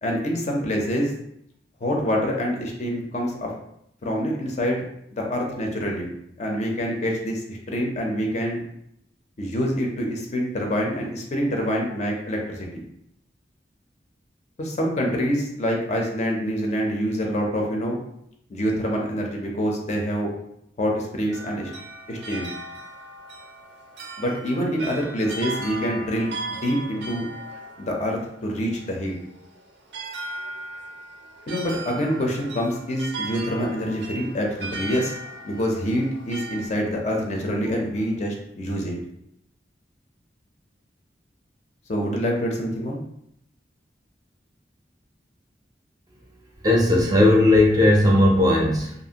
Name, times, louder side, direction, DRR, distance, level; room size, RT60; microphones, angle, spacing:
voice 1, 0.0-1.1 1.8-3.5 4.0-4.8 5.1-6.1 6.4-8.6 9.4-12.8 14.6-18.0 18.5-20.3 20.8-21.7 22.1-22.5 24.2-27.3 27.8-29.2 31.5-35.1 35.4-38.9 41.9-43.0, equal, 40° left, 0 dB, 0.5 m, -26 dB
sound 1, 21.3-36.7, right 2 dB, 75° right, 0.5 m, -37 dB
voice 2, 46.6-48.9, left 1 dB, 20° right, -2 dB, 0.5 m, -17 dB
2.7 x 2.4 x 2.8 m, 0.75 s
head